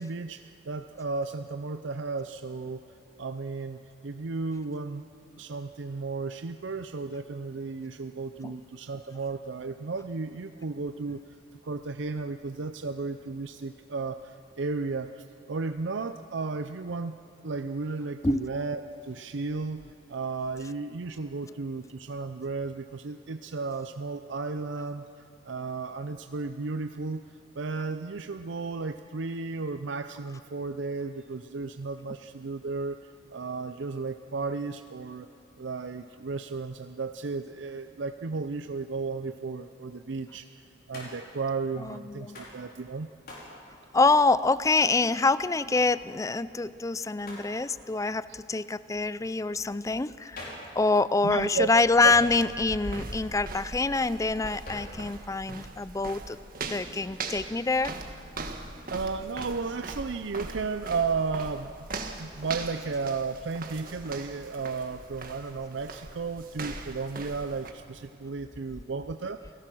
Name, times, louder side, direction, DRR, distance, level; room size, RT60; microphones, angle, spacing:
voice 1, 0.0-2.8 3.2-5.1 5.4-11.4 11.6-17.2 17.4-19.8 20.1-27.2 27.6-35.3 35.6-43.1 51.2-51.7 52.0-52.1 58.9-61.7 62.2-69.4, right 4 dB, 70° right, 9 dB, 0.6 m, -34 dB
Hands, 40.9-41.4 42.3-42.6 43.3-43.6 44.8-45.1 47.2-47.5 50.4-50.7 52.1-52.7 54.7-55.0, left 1 dB, 50° left, 5.5 m, -42 dB
voice 2, 41.8-42.4 43.9-50.5 50.8-56.4 56.7-57.9, left 3 dB, 15° left, 16 dB, 0.4 m, -26 dB
sound 1, 51.4-67.7, right 3 dB, 50° right, 1.6 m, -40 dB
29.0 x 17.5 x 6.1 m, 2.6 s
head